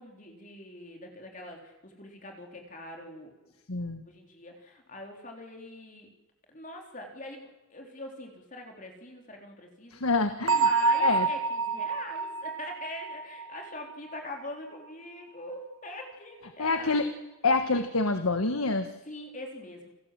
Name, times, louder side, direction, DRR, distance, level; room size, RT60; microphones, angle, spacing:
voice 1, 0.0-3.3 4.0-6.1 6.5-10.0 10.5-17.0 19.1-19.9, left 1 dB, 35° left, 2 dB, 3.9 m, -43 dB
voice 2, 3.7-4.0 9.9-10.7 11.0-11.3 16.6-17.1 17.4-18.9, left 3 dB, 85° left, 8 dB, 1.6 m, -27 dB
Bell, 10.5-14.1, right 4 dB, 65° right, 1.5 m, -28 dB
29.0 x 19.5 x 7.7 m, 1.1 s
head